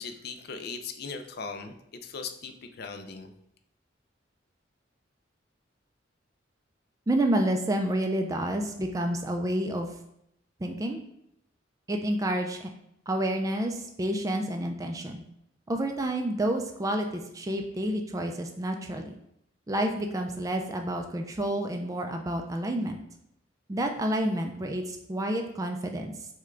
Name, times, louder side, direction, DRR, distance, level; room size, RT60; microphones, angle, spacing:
voice 1, 0.0-1.7 2.0-3.3, left 5 dB, 55° left, 6 dB, 0.5 m, -38 dB
voice 2, 7.1-9.9 10.6-11.0 11.9-12.7 13.1-15.2 15.7-19.2 19.7-23.0 23.7-26.1, right 1 dB, 20° right, 3 dB, 0.3 m, -29 dB
6.3 x 2.2 x 3.7 m, 0.78 s
head